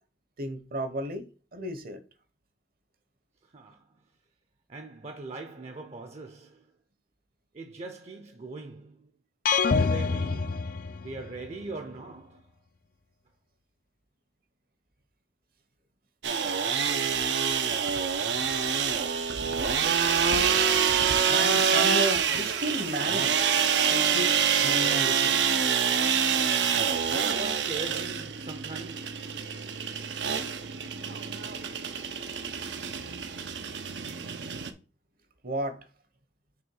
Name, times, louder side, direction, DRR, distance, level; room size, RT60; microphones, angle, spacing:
voice 1, 0.4-1.2 1.5-2.0 21.3-23.6 23.9-25.4 35.4-35.8, right 1 dB, 55° right, 1.0 m, -33 dB
voice 2, 3.4-4.0 4.7-6.7 7.5-9.1 9.6-12.5 27.1-29.4, right 2 dB, 35° right, 0.6 m, -41 dB
sound 1, 9.5-11.5, left 5 dB, 55° left, 0.4 m, -26 dB
sound 2, 16.2-34.7, right 7 dB, 80° right, 0.7 m, -26 dB
5.9 x 3.2 x 5.4 m
head